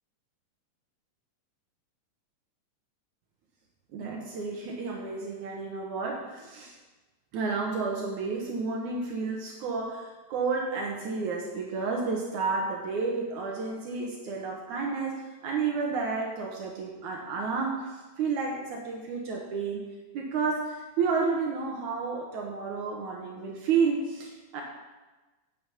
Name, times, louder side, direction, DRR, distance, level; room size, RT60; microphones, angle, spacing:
voice 1, 3.9-6.8 7.3-19.8 20.1-24.6, right 4 dB, 70° right, -1 dB, 2.5 m, -31 dB
9.4 x 7.1 x 7.0 m, 1.2 s
omnidirectional pair, 3.8 m